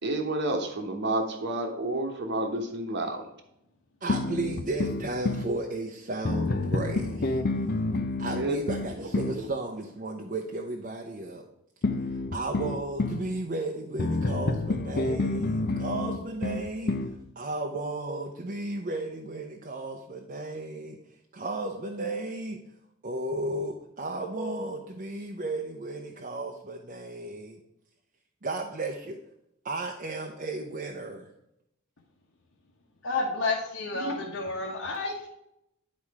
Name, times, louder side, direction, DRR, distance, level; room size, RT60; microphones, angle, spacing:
voice 1, 0.0-3.3 8.3-8.6 9.0-9.4, right 1 dB, 55° right, 5 dB, 1.2 m, -30 dB
voice 2, 4.0-7.4 8.2-11.4 12.1-17.0 17.4-21.0 21.3-22.6 23.0-27.6 28.4-29.2 29.6-31.3, right 2 dB, 40° right, 1 dB, 0.7 m, -34 dB
sound 1, 4.1-5.5 6.2-9.4 11.8-13.3 14.0-17.2, left 2 dB, 50° left, 0.6 m, -29 dB
voice 3, 33.0-35.3, left 3 dB, 70° left, -3 dB, 1.3 m, -30 dB
10.5 x 4.3 x 4.8 m, 0.81 s
head